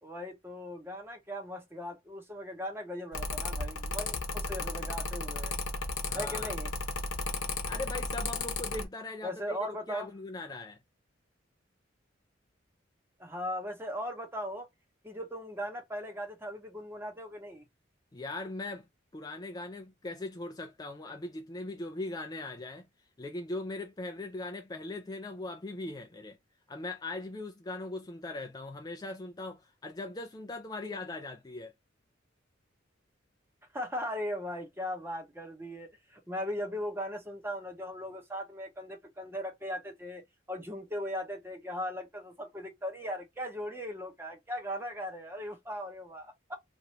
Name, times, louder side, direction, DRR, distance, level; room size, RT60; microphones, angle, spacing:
voice 1, 0.0-5.5 6.1-6.7 9.2-10.1 13.2-14.7 15.0-17.7 33.7-40.2 40.5-46.5, equal, 10° right, 0.8 m, -38 dB
Mechanical fan, 3.1-8.8, left 3 dB, 75° left, 0.9 m, -34 dB
voice 2, 6.1-6.5 7.6-9.6 9.9-10.8 18.1-18.9 19.1-22.9 23.2-26.4 26.7-31.7, left 2 dB, 20° left, 0.4 m, -40 dB
2.9 x 2.6 x 2.9 m
head